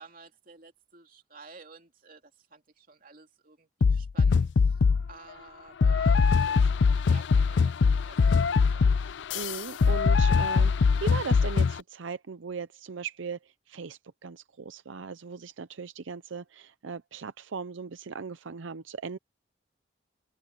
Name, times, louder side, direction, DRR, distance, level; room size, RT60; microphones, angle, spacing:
voice 1, 0.0-4.8 5.1-8.9, right 4 dB, 45° right, 2.9 m, -52 dB
sound 1, 3.8-5.1 5.8-11.8, left 5 dB, 70° left, 0.4 m, -22 dB
voice 2, 9.3-13.4 13.7-19.2, right 5 dB, 85° right, 0.6 m, -38 dB
head